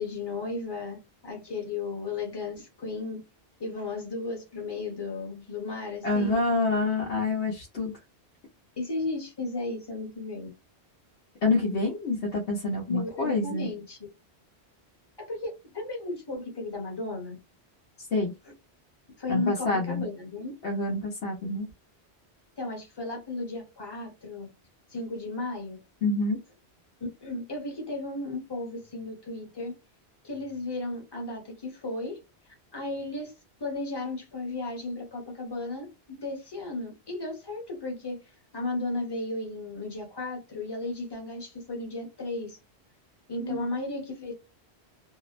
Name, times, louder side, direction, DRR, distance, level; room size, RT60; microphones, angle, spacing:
voice 1, 0.0-3.2 3.6-6.5 8.8-10.5 12.9-14.0 15.2-17.4 19.2-20.5 22.6-24.5 24.9-25.8 27.2-29.7 30.2-32.2 32.7-33.3 33.6-38.2 38.5-42.6 43.3-44.3, left 2 dB, 25° left, 0.9 m, -34 dB
voice 2, 6.0-7.9 11.4-13.7 18.1-18.3 19.3-20.1 20.6-21.7 26.0-26.4 43.4-43.7, left 3 dB, 85° left, 1.1 m, -27 dB
2.8 x 2.0 x 2.4 m
omnidirectional pair, 1.1 m